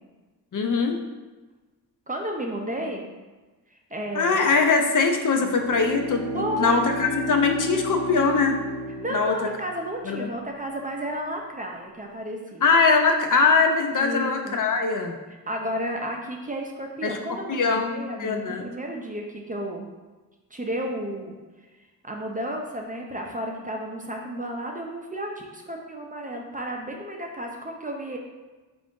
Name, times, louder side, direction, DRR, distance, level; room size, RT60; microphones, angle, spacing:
voice 1, 0.5-1.0 4.2-8.6 9.1-9.3 10.1-10.3 12.6-15.2 17.0-17.2 17.5-18.7, left 4 dB, 55° left, 4 dB, 0.5 m, -22 dB
voice 2, 2.1-3.1 3.7-4.4 6.3-6.8 9.0-12.7 14.0-14.6 15.3-19.9 20.5-21.4 22.0-28.2, right 1 dB, 20° right, 1 dB, 0.5 m, -32 dB
Bowed string instrument, 5.4-9.9, right 1 dB, 90° right, 0.5 m, -33 dB
4.6 x 2.6 x 3.6 m, 1.2 s
wide cardioid pair, 95°, 38 cm